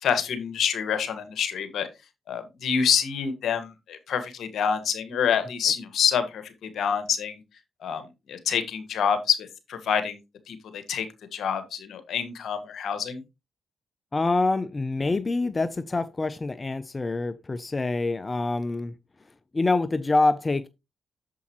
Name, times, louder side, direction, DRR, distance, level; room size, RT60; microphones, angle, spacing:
voice 1, 0.0-1.9 2.3-7.4 7.8-8.0 8.3-10.2 10.5-11.1 11.3-13.2, left 7 dB, 70° left, 1.6 m, -27 dB
voice 2, 14.1-18.9 19.5-20.7, left 2 dB, 30° left, 0.6 m, -26 dB
8.4 x 7.1 x 3.0 m
supercardioid pair, 50°, 0 cm